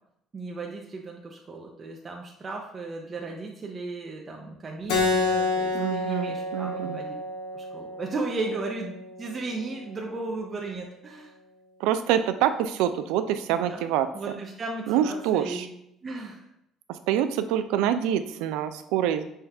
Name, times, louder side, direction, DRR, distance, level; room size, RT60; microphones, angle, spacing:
voice 1, 0.3-7.2 7.5-11.3 13.5-13.8 14.1-15.7 16.0-16.4, right 3 dB, 30° right, 0 dB, 0.5 m, -35 dB
Keyboard (musical), 4.9-10.0, left 3 dB, 90° left, 0.7 m, -29 dB
voice 2, 5.7-7.0 11.8-14.1 14.9-15.7 17.1-19.2, right 10 dB, 90° right, 10 dB, 0.3 m, -26 dB
5.6 x 2.3 x 3.3 m, 0.77 s
cardioid pair, 125°, 0 cm